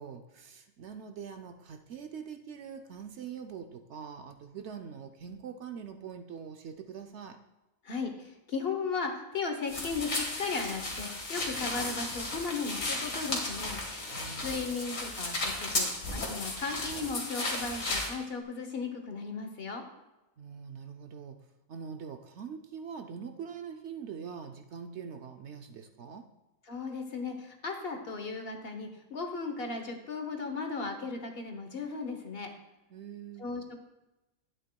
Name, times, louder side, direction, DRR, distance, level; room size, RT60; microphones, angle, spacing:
voice 1, 0.0-7.4 14.1-14.5 20.4-21.4 21.7-26.3 32.9-33.5, right 7 dB, 65° right, 6 dB, 0.8 m, -43 dB
voice 2, 7.8-13.8 14.3-19.8 26.7-32.5 33.4-33.8, left 4 dB, 50° left, 5 dB, 1.1 m, -36 dB
sound 1, 9.7-18.1, left 2 dB, 75° left, 2.0 m, -34 dB
11.5 x 8.8 x 2.3 m, 1.0 s
omnidirectional pair, 1.4 m